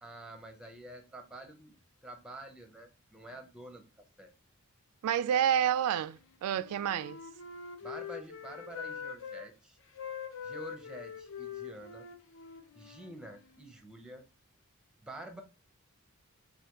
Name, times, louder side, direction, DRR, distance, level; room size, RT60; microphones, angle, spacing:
voice 1, 0.0-1.7 2.0-3.8 4.2-4.3 7.8-9.8 10.4-12.1 12.7-14.2 15.0-15.4, right 1 dB, 5° right, 0.6 m, -48 dB
voice 2, 5.0-7.2, right 9 dB, 85° right, 0.3 m, -29 dB
Wind instrument woodwind instrument, 6.5-9.5 9.9-13.8, left 7 dB, 60° left, 0.6 m, -44 dB
4.9 x 2.6 x 2.9 m
head